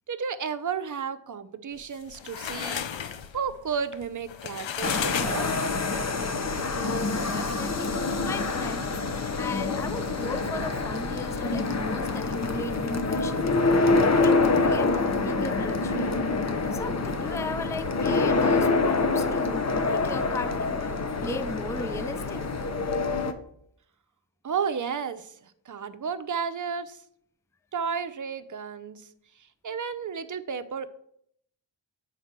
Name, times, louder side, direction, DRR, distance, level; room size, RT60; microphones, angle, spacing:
voice 1, 0.1-2.9 3.3-5.5 24.4-27.0 27.7-29.1 29.6-30.9, right 6 dB, 40° right, 0.7 m, -32 dB
sound 1, 1.8-6.0, left 8 dB, 75° left, 0.7 m, -34 dB
sound 2, 4.8-23.3, left 3 dB, 35° left, 0.8 m, -26 dB
voice 2, 6.8-7.9 8.2-8.9 9.3-13.5 14.2-16.2 16.7-20.9 21.2-22.5, left 2 dB, 5° left, 0.4 m, -37 dB
7.9 x 4.1 x 6.0 m
cardioid pair, 70°, 45 cm